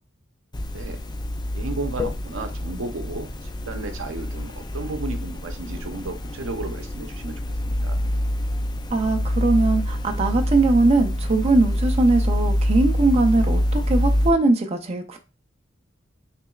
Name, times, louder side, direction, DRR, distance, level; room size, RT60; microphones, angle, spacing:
sound 1, 0.5-14.3, equal, 20° left, 0.4 m, -26 dB
voice 1, 1.5-7.4 7.7-8.0, right 2 dB, 85° right, 0.7 m, -34 dB
voice 2, 8.9-15.2, right 2 dB, 30° right, 0.5 m, -20 dB
5.9 x 3.3 x 2.3 m
head